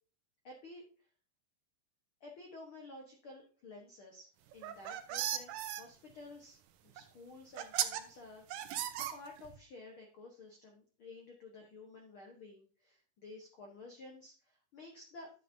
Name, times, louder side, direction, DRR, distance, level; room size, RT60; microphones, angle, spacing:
voice 1, 0.4-0.9 2.2-6.6 6.8-8.4 9.0-15.3, left 2 dB, 85° left, 1 dB, 1.1 m, -52 dB
sound 1, 4.5-5.8 7.0-7.1 7.6-8.0 8.5-9.6, right 11 dB, 80° right, 1.9 m, -36 dB
11.0 x 7.9 x 2.7 m, 0.39 s
omnidirectional pair, 4.4 m